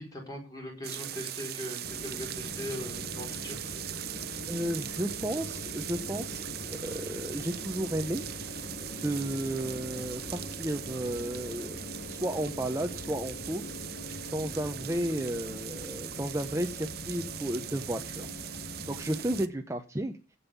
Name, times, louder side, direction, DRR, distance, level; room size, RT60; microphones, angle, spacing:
voice 1, 0.0-3.6, left 1 dB, 20° left, 0 dB, 4.6 m, -40 dB
sound 1, 0.8-19.5, right 12 dB, 55° right, 0.7 m, -40 dB
sound 2, 1.8-19.4, left 2 dB, 40° left, 0.9 m, -43 dB
voice 2, 4.5-6.4 6.7-8.2 9.0-11.8 12.0-13.8 14.3-18.3 18.6-20.2, right 1 dB, 15° right, 6 dB, 0.8 m, -33 dB
15.5 x 5.6 x 6.9 m, 0.34 s
head